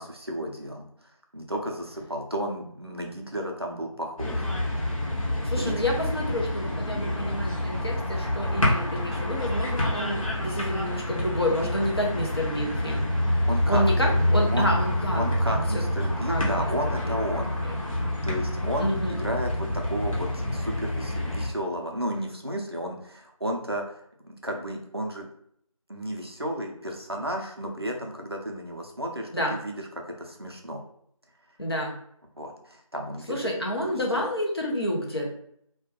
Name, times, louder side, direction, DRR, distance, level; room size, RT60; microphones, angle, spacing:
voice 1, 0.0-4.5 5.6-5.8 13.5-13.8 14.5-14.7 15.1-17.5 18.2-25.3 25.9-29.8 30.2-30.8 32.4-33.6 33.9-34.0, equal, 45° right, 1 dB, 0.4 m, -33 dB
sound 1, 4.2-21.5, left 1 dB, 70° left, 0.9 m, -27 dB
voice 2, 5.4-13.1 13.7-15.3 15.5-15.8 16.3-16.7 17.0-17.1 17.6-17.8 18.8-19.2 29.3-29.5 31.6-31.9 33.3-35.3, equal, 45° left, -2 dB, 0.6 m, -29 dB
2.2 x 2.1 x 2.8 m, 0.67 s
figure-of-eight pair, 175°, 18 cm